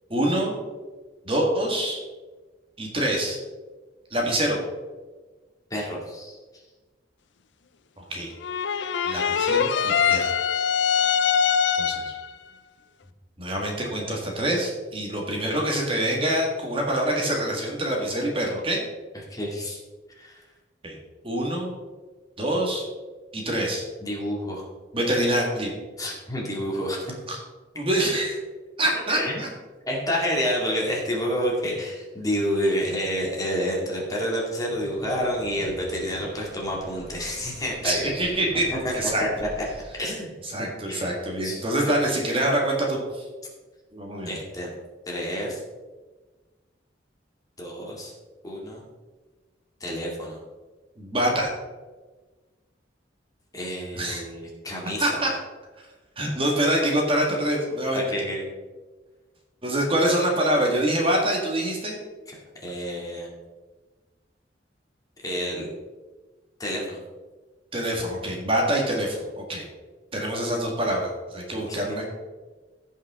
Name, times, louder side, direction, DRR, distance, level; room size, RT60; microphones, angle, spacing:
voice 1, 0.1-0.6 1.3-2.0 2.8-3.4 4.1-4.6 8.0-8.3 9.0-10.3 11.8-12.1 13.4-18.8 20.8-21.0 21.2-21.7 22.4-22.8 23.3-23.9 24.9-25.7 27.3-27.4 27.8-28.4 28.8-29.5 36.1-36.2 37.8-38.6 38.9-39.2 40.5-43.3 43.9-44.3 51.0-51.5 53.9-54.2 55.0-55.3 56.2-58.0 59.6-62.0 67.7-69.6 70.1-72.1, right 1 dB, 30° right, -1 dB, 1.8 m, -25 dB
voice 2, 5.7-6.4 19.3-19.8 20.2-20.4 24.0-24.7 26.0-27.1 29.1-29.4 29.9-38.1 38.7-38.8 39.2-39.3 40.0-40.3 40.6-41.0 41.4-41.9 44.3-44.7 45.1-45.6 47.6-48.1 48.4-48.8 49.8-50.4 53.5-55.2 57.9-58.4 62.6-63.3 65.2-65.7 66.6-67.0 71.5-71.8, equal, 20° left, -3 dB, 2.3 m, -29 dB
sound 1, 8.4-12.3, left 7 dB, 75° left, 0.5 m, -23 dB
sound 2, 34.7-39.7, equal, 10° right, 2.8 m, -44 dB
16.0 x 5.5 x 3.6 m, 1.3 s
head